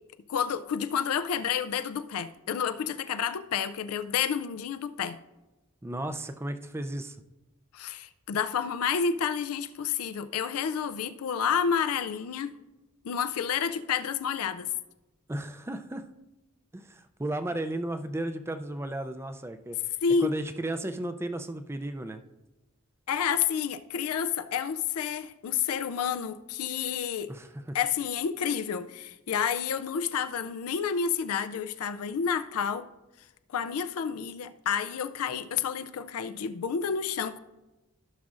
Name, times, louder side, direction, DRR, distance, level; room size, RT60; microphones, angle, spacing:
voice 1, 0.3-5.2 7.7-12.6 13.0-14.7 20.0-20.3 23.1-27.3 27.7-32.9 33.5-37.4, left 7 dB, 85° left, 11 dB, 0.4 m, -30 dB
voice 2, 5.8-7.2 15.3-16.1 16.7-19.9 20.2-22.2 27.3-27.8, right 1 dB, 10° right, 8 dB, 0.4 m, -34 dB
15.5 x 6.1 x 2.5 m, 1.0 s
head